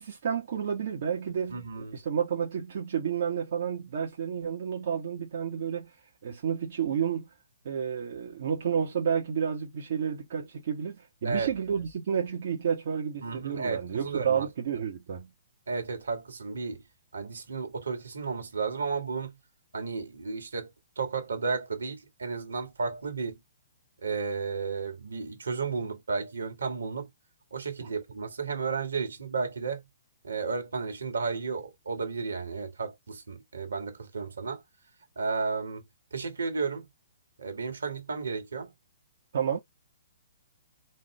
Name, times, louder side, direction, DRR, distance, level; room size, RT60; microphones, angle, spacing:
voice 1, 0.0-1.7 1.9-5.9 6.2-7.3 7.6-15.3 27.8-27.9 39.3-39.6, right 7 dB, 50° right, 1.1 m, -30 dB
voice 2, 1.5-2.0 11.2-11.5 13.2-14.5 15.7-16.8 17.1-19.3 19.7-20.7 21.0-23.4 24.0-27.1 27.5-29.8 30.2-34.6 35.2-35.8 36.1-36.9 37.4-38.7, right 4 dB, 70° right, 1.6 m, -33 dB
4.2 x 2.5 x 3.3 m
figure-of-eight pair, 125°, 0 cm